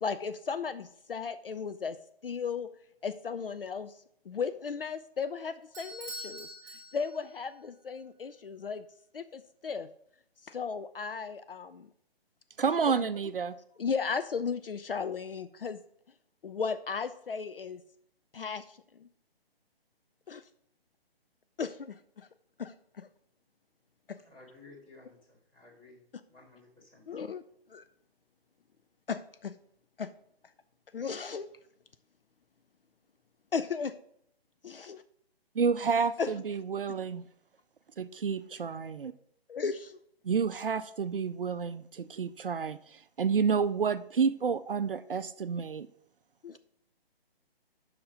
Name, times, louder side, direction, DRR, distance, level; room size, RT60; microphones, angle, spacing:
voice 1, 0.0-2.0 2.2-2.7 3.0-8.8 9.1-9.9 10.4-11.9 12.9-13.1 13.8-15.8 16.4-17.8 18.3-19.1 20.3-20.4 21.6-22.3 22.6-23.1 24.1-24.2 27.1-27.4 27.7-27.8 29.1-29.6 30.0-30.1 30.9-31.5 33.5-34.0 34.6-35.0 36.2-36.3 39.5-40.0 46.4-46.6, left 5 dB, 65° left, 12 dB, 0.5 m, -35 dB
Bell / Doorbell, 5.7-7.5, equal, 10° right, 1.5 m, -44 dB
voice 2, 12.6-13.6 35.6-37.2 38.0-39.1 40.2-45.9, right 6 dB, 60° right, 13 dB, 0.5 m, -30 dB
voice 3, 24.2-26.0 26.3-27.2, left 2 dB, 15° left, -4 dB, 2.4 m, -55 dB
7.7 x 5.9 x 5.1 m, 0.71 s
figure-of-eight pair, 135°, 31 cm